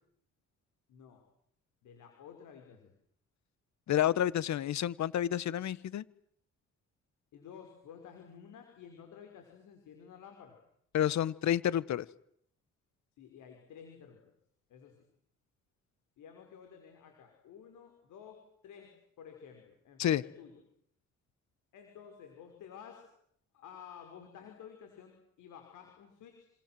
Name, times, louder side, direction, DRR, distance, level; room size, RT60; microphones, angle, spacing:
voice 1, 0.9-1.2 1.8-2.9 7.3-10.5 13.2-14.3 14.7-15.0 16.2-20.6 21.7-23.1 23.5-26.5, left 7 dB, 85° left, 4 dB, 5.8 m, -52 dB
voice 2, 3.9-6.0 10.9-12.0 20.0-20.2, left 11 dB, 65° left, 19 dB, 1.4 m, -29 dB
27.5 x 27.0 x 7.8 m, 0.69 s
cardioid pair, 90°, 30 cm